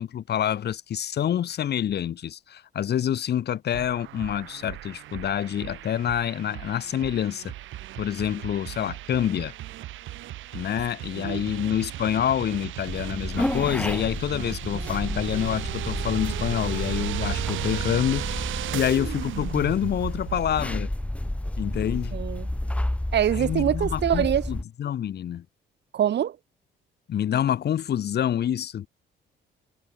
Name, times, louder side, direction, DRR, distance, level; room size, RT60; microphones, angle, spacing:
voice 1, 0.0-7.5 8.0-9.5 10.5-18.4 18.7-20.9 21.6-22.2 23.3-25.4 27.1-28.9, left 10 dB, 55° left, 1.0 m, -27 dB
sound 1, 3.7-20.6, right 14 dB, 75° right, 0.8 m, -35 dB
sound 2, 12.9-24.6, left 1 dB, 5° left, 1.2 m, -31 dB
voice 2, 22.1-22.5 23.1-24.4 25.9-26.4, right 10 dB, 60° right, 1.4 m, -24 dB
cardioid pair, 90°, 20 cm